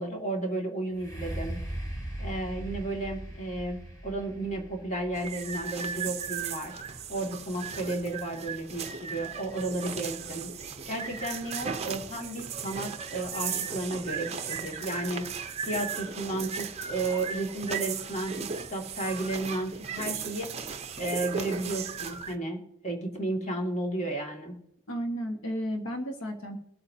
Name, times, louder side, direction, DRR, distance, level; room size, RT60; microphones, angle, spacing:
voice 1, 0.0-1.6 2.2-24.6, right 2 dB, 30° left, 1 dB, 2.1 m, -33 dB
sound 1, 0.9-8.7 9.3-9.4, right 1 dB, 15° left, 2.7 m, -40 dB
sound 2, 5.1-22.4, right 6 dB, 30° right, 0.7 m, -36 dB
voice 2, 24.9-26.6, equal, 70° left, 4 dB, 1.4 m, -33 dB
23.0 x 8.6 x 2.7 m, 0.80 s
head